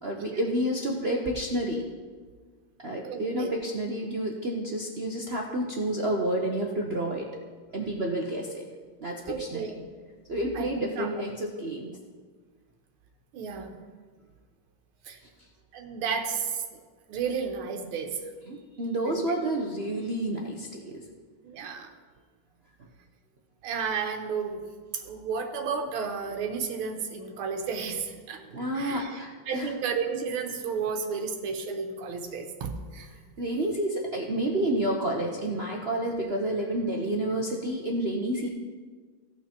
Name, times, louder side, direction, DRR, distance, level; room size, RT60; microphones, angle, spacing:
voice 1, 0.0-1.8 2.8-7.3 7.7-8.7 9.0-9.6 10.3-12.0 18.5-21.0 28.5-29.7 33.4-38.5, right 1 dB, 60° right, 0 dB, 0.6 m, -29 dB
voice 2, 3.0-3.5 9.3-9.8 10.5-11.1 13.3-13.8 15.0-15.2 15.7-16.8 17.1-18.2 19.0-19.2 21.4-21.9 23.6-24.6 24.9-28.4 28.7-29.2 29.5-33.1, right 6 dB, 90° right, 3 dB, 1.8 m, -32 dB
17.0 x 6.0 x 4.3 m, 1.5 s
omnidirectional pair, 2.3 m